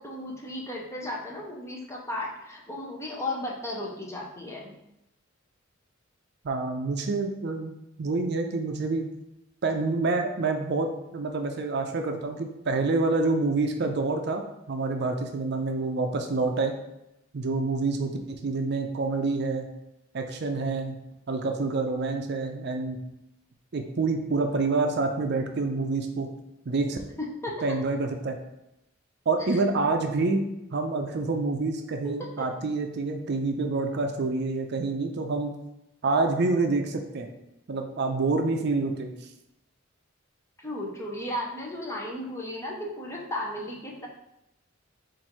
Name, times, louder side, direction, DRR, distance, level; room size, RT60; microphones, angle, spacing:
voice 1, 0.0-4.7 27.2-27.7 29.4-29.6 32.0-32.3 40.6-44.1, left 1 dB, 15° left, -2 dB, 0.7 m, -35 dB
voice 2, 6.4-9.1 9.6-14.4 14.7-16.7 17.3-19.7 20.1-20.9 21.3-23.0 23.7-26.3 26.7-27.0 27.6-28.4 29.3-30.4 30.7-35.5 36.0-37.3 37.7-39.1, right 3 dB, 55° right, 4 dB, 0.5 m, -27 dB
4.5 x 2.6 x 4.3 m, 0.88 s
head